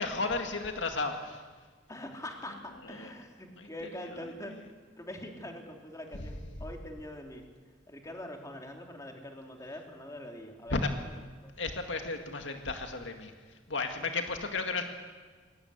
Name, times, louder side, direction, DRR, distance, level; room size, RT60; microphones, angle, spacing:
voice 1, 0.0-1.4 2.9-3.1 3.6-3.7 10.7-10.9 11.6-13.3 13.7-14.8, left 3 dB, 85° left, 5 dB, 2.1 m, -33 dB
voice 2, 1.9-4.5 5.0-7.4 7.9-11.1 11.4-11.5, left 1 dB, 20° left, 2 dB, 2.8 m, -44 dB
21.5 x 19.5 x 8.2 m, 1.5 s
head